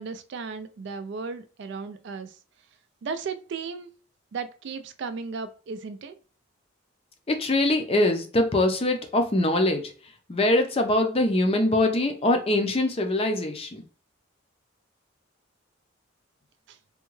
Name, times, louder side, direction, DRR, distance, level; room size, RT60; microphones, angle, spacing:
voice 1, 0.0-2.4 3.0-4.0 4.3-6.1 16.7-16.8, right 5 dB, 55° right, 0.3 m, -35 dB
voice 2, 7.3-9.9 10.3-13.8, left 1 dB, 25° left, 0.4 m, -23 dB
3.5 x 2.2 x 3.0 m
head